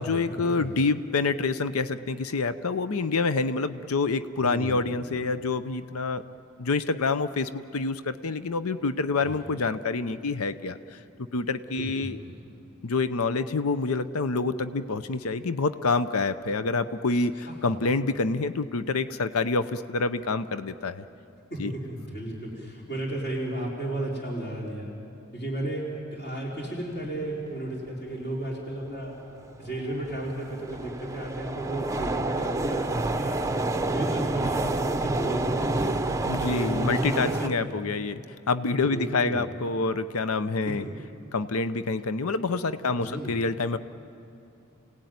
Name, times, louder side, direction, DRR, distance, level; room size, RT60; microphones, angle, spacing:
voice 1, 0.0-6.2 6.6-12.2 12.8-21.0 21.6-21.7 36.2-38.2 38.5-40.8 41.3-43.8, left 3 dB, 75° left, 12 dB, 0.7 m, -27 dB
voice 2, 4.4-5.2 9.2-9.5 11.8-12.4 17.5-17.8 21.5-24.9 25.3-25.8 26.1-29.1 29.6-33.4 33.8-35.9 36.4-37.9 38.7-39.5 40.6-40.9 42.9-43.4, right 1 dB, 45° left, -3 dB, 4.3 m, -34 dB
sound 1, 28.8-28.9 29.5-37.5, right 2 dB, 15° right, 0.7 m, -28 dB
28.5 x 17.5 x 9.4 m, 2.6 s
head